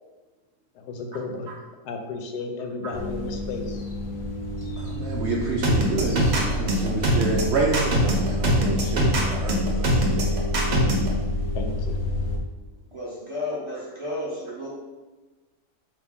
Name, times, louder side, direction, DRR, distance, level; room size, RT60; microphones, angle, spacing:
voice 1, 0.7-1.5 1.8-3.8 11.5-12.0, left 3 dB, 90° left, 4 dB, 1.2 m, -33 dB
sound 1, 2.9-12.4, equal, 60° left, 0.8 m, -28 dB
voice 2, 4.8-10.3, right 3 dB, 70° right, -2 dB, 0.6 m, -28 dB
sound 2, 5.6-11.1, equal, 50° right, 0.9 m, -22 dB
voice 3, 12.9-14.7, left 1 dB, 25° right, -6 dB, 0.7 m, -32 dB
4.1 x 2.8 x 3.5 m, 1.2 s
omnidirectional pair, 1.6 m